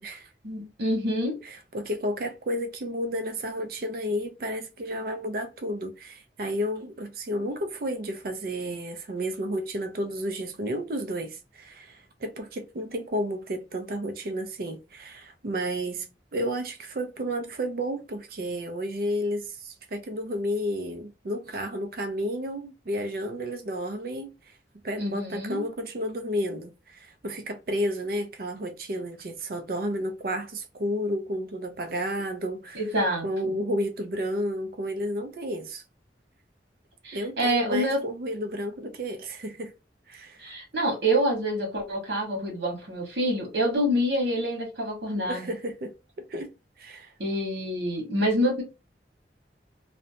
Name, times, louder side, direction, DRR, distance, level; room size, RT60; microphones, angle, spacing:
voice 1, 0.4-1.4 25.0-25.6 32.7-33.2 37.0-38.0 40.4-45.5 47.2-48.6, equal, 70° right, 1.3 m, -27 dB
voice 2, 1.4-24.6 24.8-32.8 33.2-35.8 37.1-39.7 40.1-40.4 45.3-47.1, equal, 55° right, 0.4 m, -32 dB
2.7 x 2.1 x 2.7 m
head